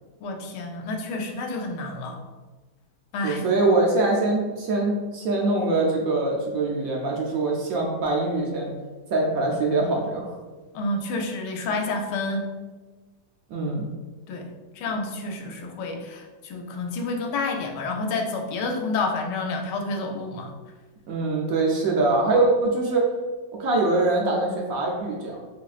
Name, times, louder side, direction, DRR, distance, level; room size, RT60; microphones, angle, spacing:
voice 1, 0.2-2.2 3.1-3.4 10.7-12.5 14.3-20.5, left 3 dB, 80° left, 3 dB, 1.2 m, -29 dB
voice 2, 3.2-8.7 9.1-10.3 13.5-13.9 21.1-23.0 23.5-25.4, right 2 dB, 70° right, -1 dB, 0.9 m, -23 dB
4.1 x 3.0 x 2.4 m, 1.3 s
omnidirectional pair, 1.8 m